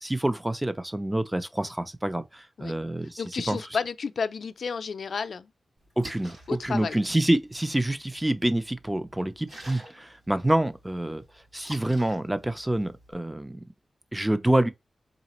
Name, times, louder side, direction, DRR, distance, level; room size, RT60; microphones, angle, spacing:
voice 1, 0.0-3.2 3.5-3.6 6.0-11.2 11.5-13.6 14.1-14.7, right 1 dB, 10° right, 0.4 m, -27 dB
voice 2, 3.2-5.5 6.5-7.0, left 5 dB, 70° left, 0.4 m, -31 dB
Splash splatter, 5.8-13.1, right 1 dB, 70° right, 3.0 m, -50 dB
4.0 x 3.2 x 2.9 m
wide cardioid pair, 120°, 0 cm